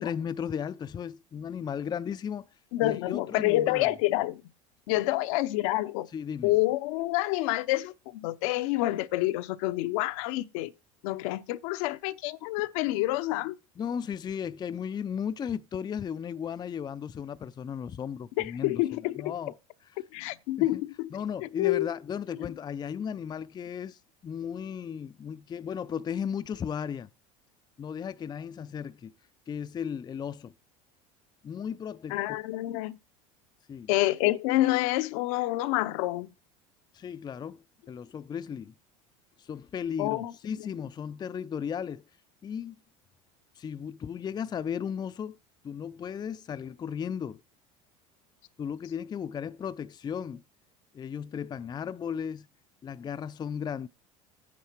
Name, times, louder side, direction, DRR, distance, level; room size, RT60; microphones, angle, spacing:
voice 1, 0.0-2.5 2.8-3.9 6.1-6.5 13.8-19.5 20.6-20.8 21.1-27.1 27.8-29.1 29.5-30.5 31.4-32.2 33.7-33.9 36.9-38.7 39.4-42.0 42.4-42.8 43.6-45.4 45.6-47.4 48.6-50.4 50.9-52.5 52.8-53.9, left 7 dB, 25° left, 0.4 m, -35 dB
voice 2, 2.7-4.4 4.9-6.1 6.4-10.7 11.0-13.6 18.4-19.3 20.1-21.1 21.4-21.9 32.1-33.0 33.9-36.3 40.0-40.3, left 17 dB, 75° left, 0.7 m, -28 dB
9.5 x 6.4 x 4.5 m
hypercardioid pair, 90°, 18 cm